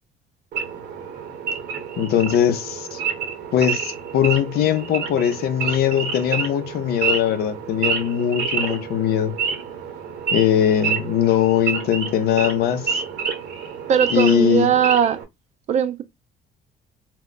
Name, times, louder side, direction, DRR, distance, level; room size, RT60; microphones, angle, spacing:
Wild animals / Idling, 0.5-15.2, right 6 dB, 75° right, 0.9 m, -28 dB
voice 1, 2.0-3.0 3.5-9.3 10.3-13.0 14.1-14.7, left 10 dB, 70° left, 0.6 m, -20 dB
voice 2, 13.9-15.2 15.7-16.0, right 9 dB, 45° right, 0.4 m, -19 dB
2.2 x 2.2 x 3.7 m
cardioid pair, 110°, 17 cm